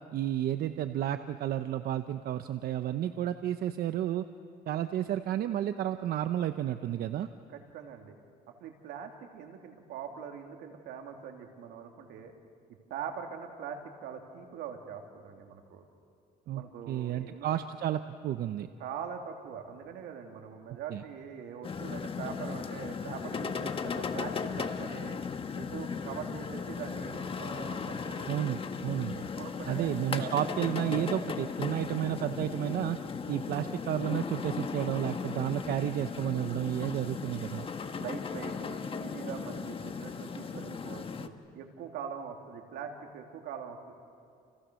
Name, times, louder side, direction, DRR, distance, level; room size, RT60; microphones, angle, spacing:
voice 1, 0.1-4.2 4.7-7.3 16.5-18.7 20.9-21.0 28.3-29.3 29.7-33.0 33.3-37.7, right 11 dB, 65° right, 9 dB, 0.9 m, -32 dB
voice 2, 7.5-8.2 8.6-12.3 12.9-15.8 16.5-17.5 18.8-25.2 25.5-28.4 29.4-30.3 38.0-43.9, right 7 dB, 85° right, 3 dB, 3.2 m, -42 dB
sound 1, 21.6-41.3, left 5 dB, 35° left, 1.4 m, -37 dB
30.0 x 30.0 x 6.5 m, 2.5 s
cardioid pair, 110°, 17 cm